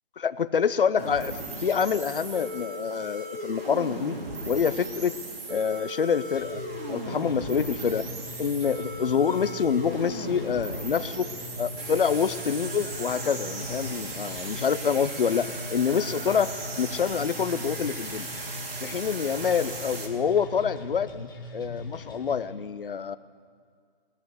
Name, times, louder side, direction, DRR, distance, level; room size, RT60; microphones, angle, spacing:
voice 1, 0.2-1.3 1.6-4.2 4.4-5.1 5.5-6.6 6.9-8.1 8.4-11.3 11.6-16.5 16.8-18.3 18.8-21.3 21.5-23.2, left 7 dB, 65° left, 15 dB, 0.7 m, -26 dB
sound 1, 1.0-20.1, right 1 dB, 80° right, 2.7 m, -37 dB
sound 2, 6.3-22.3, left 2 dB, 20° left, 1.2 m, -41 dB
20.0 x 6.9 x 8.0 m, 2.1 s
hypercardioid pair, 180°, 30 cm